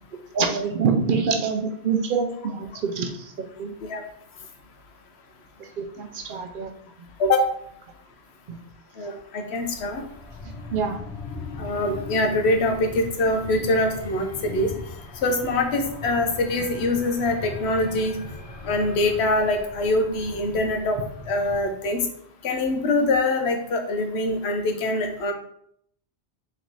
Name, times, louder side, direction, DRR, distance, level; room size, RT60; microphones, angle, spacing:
voice 1, 0.3-3.7 5.6-6.7 8.5-8.6 10.7-11.0, right 5 dB, 60° right, 4 dB, 0.6 m, -26 dB
voice 2, 9.0-10.0 11.6-14.7 15.2-18.2 18.6-21.0 21.3-22.1 22.4-25.3, left 2 dB, 80° left, 4 dB, 0.9 m, -24 dB
sound 1, 9.7-21.7, left 3 dB, 45° left, 0.5 m, -39 dB
3.3 x 3.0 x 3.9 m, 0.67 s
omnidirectional pair, 1.1 m